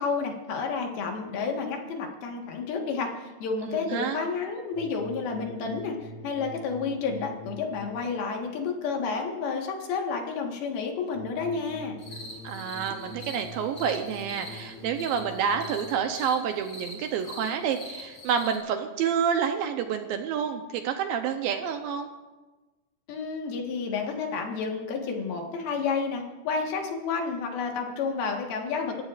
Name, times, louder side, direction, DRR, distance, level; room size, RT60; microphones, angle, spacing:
voice 1, 0.0-12.0 23.1-29.0, left 5 dB, 70° left, 2 dB, 3.3 m, -30 dB
voice 2, 3.6-4.2 12.4-22.1, right 7 dB, 75° right, 6 dB, 2.3 m, -28 dB
sound 1, 4.7-8.2 11.1-16.2, equal, 55° right, 6.3 m, -44 dB
sound 2, 12.0-18.6, left 1 dB, 40° left, 3.5 m, -43 dB
28.0 x 15.0 x 2.5 m, 1.2 s
omnidirectional pair, 4.6 m